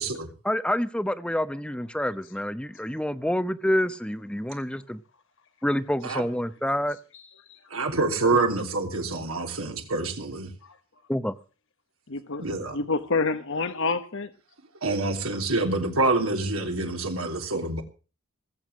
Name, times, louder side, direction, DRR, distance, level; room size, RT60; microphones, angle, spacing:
voice 1, 0.4-5.0 5.6-7.0 11.1-11.3, equal, 5° left, 0.8 m, -27 dB
voice 2, 7.7-10.5 12.4-12.8 14.8-17.8, right 3 dB, 75° right, 3.3 m, -26 dB
voice 3, 12.1-12.4 12.7-14.3, left 3 dB, 60° left, 1.1 m, -28 dB
19.5 x 8.1 x 7.6 m
head